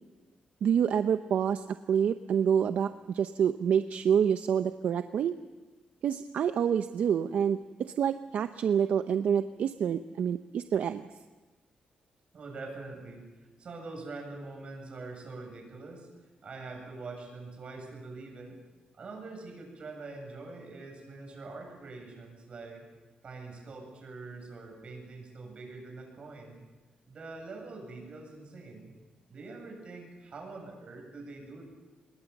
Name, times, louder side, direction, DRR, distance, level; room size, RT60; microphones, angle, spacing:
voice 1, 0.6-5.3 6.0-11.0, right 8 dB, 65° right, 10 dB, 0.7 m, -27 dB
voice 2, 12.3-16.1 16.4-18.6 19.0-22.9 23.2-26.6 27.1-28.9 29.3-31.7, right 3 dB, 45° right, 2 dB, 8.0 m, -44 dB
26.0 x 21.0 x 7.2 m, 1.2 s
wide cardioid pair, 150°, 3 cm